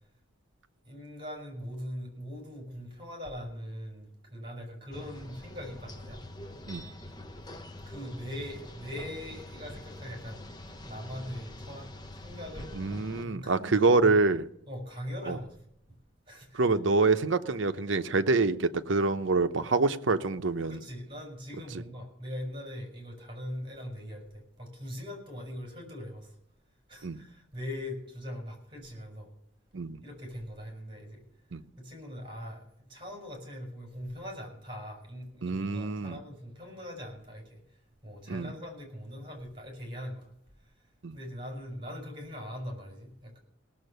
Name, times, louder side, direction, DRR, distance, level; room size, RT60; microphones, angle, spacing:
voice 1, 0.8-6.2 7.8-10.4 10.9-12.7 13.2-14.1 14.7-15.5 16.3-16.6 20.7-26.4 26.9-29.3 30.0-31.2 31.8-40.3 40.6-40.7 41.1-43.4, equal, 25° right, 1 dB, 5.5 m, -41 dB
sound 1, 4.9-13.2, left 1 dB, 20° left, 0.8 m, -45 dB
voice 2, 12.8-14.4 15.3-15.4 16.5-20.8 27.0-27.2 29.7-30.0 31.5-31.6 35.4-36.2 38.3-38.5 41.0-41.2, right 3 dB, 65° right, 9 dB, 0.8 m, -26 dB
18.0 x 7.2 x 6.7 m, 0.75 s
head